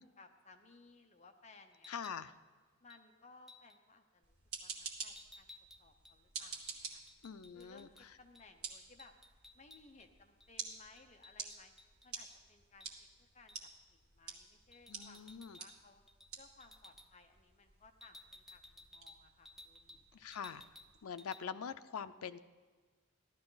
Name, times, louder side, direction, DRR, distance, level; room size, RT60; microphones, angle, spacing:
voice 1, 0.0-2.1 2.8-7.0 7.5-9.1 9.5-11.7 12.0-16.0 16.4-20.1, left 3 dB, 30° left, 5 dB, 0.8 m, -62 dB
sound 1, 1.7-2.2 2.9-3.1 3.5-3.8 5.2-8.1 8.3-8.5 8.7-10.1 10.4-12.4 12.8-12.9 13.5-13.7 14.7-15.8 16.1-16.3 16.6-17.1 18.0-20.0 20.3-20.9 21.2-21.4, left 1 dB, ahead, 0.4 m, -58 dB
voice 2, 1.9-2.3 7.2-8.2 14.9-15.6 20.1-20.6 21.0-22.4, left 7 dB, 85° left, 12 dB, 0.5 m, -44 dB
sound 2, 4.2-21.0, right 5 dB, 80° right, 1.8 m, -51 dB
15.0 x 12.0 x 4.0 m, 1.4 s
head